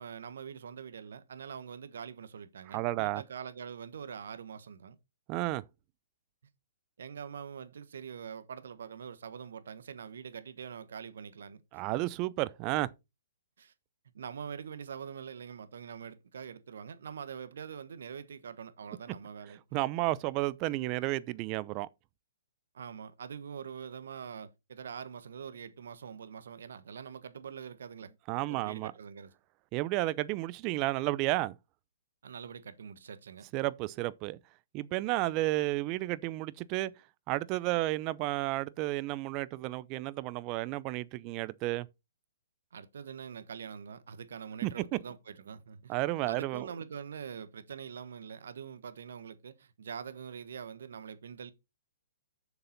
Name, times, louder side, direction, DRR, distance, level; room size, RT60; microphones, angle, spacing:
voice 1, 0.0-5.0 7.0-11.8 13.6-13.7 14.1-19.6 22.7-28.1 28.5-29.3 32.2-33.5 42.7-51.5, right 7 dB, 70° right, 1.2 m, -44 dB
voice 2, 2.7-3.2 5.3-5.6 11.7-12.9 19.7-21.9 28.3-28.9 29.7-31.6 33.5-34.4 34.7-36.9 37.3-41.9 44.6-44.7 45.9-46.7, right 18 dB, 35° right, 0.6 m, -32 dB
6.9 x 6.9 x 4.0 m
hypercardioid pair, 130°, 0 cm